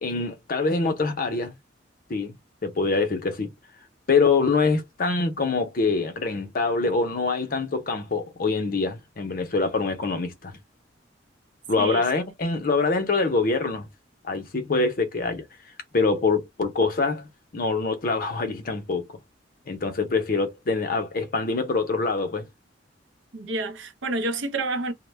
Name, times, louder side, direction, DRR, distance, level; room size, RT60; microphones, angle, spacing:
voice 1, 0.0-1.5 2.1-2.4 2.6-3.5 4.1-10.6 11.7-13.9 14.2-15.4 15.9-19.0 19.7-22.5, left 4 dB, 50° left, 0.6 m, -25 dB
voice 2, 23.3-24.9, right 2 dB, 90° right, 0.6 m, -29 dB
2.1 x 2.0 x 3.1 m
head